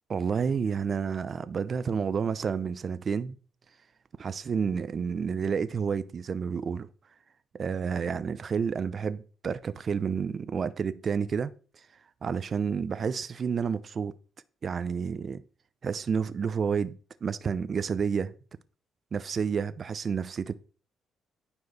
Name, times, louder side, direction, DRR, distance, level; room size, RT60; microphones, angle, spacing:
voice 1, 0.1-3.4 4.2-6.9 7.6-11.5 12.2-14.1 14.6-15.4 15.8-18.3 19.1-20.5, right 6 dB, 45° right, 0.6 m, -30 dB
9.7 x 4.5 x 5.3 m
cardioid pair, 90°, 0 cm